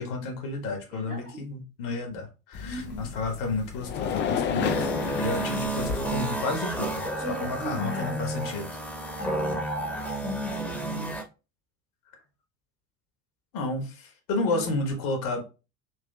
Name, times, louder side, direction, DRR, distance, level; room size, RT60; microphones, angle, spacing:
voice 1, 0.0-8.7 13.5-15.5, left 3 dB, 50° left, 1.3 m, -31 dB
voice 2, 0.9-1.5 2.6-3.1 5.4-5.6 7.2-8.2 9.2-11.2 14.5-14.7, left 1 dB, 90° right, 1.9 m, -37 dB
sound 1, 2.5-6.3, left 7 dB, 25° left, 0.4 m, -31 dB
sound 2, 4.6-11.2, right 2 dB, 5° left, 1.0 m, -31 dB
6.0 x 2.8 x 2.3 m
figure-of-eight pair, 65°, 44 cm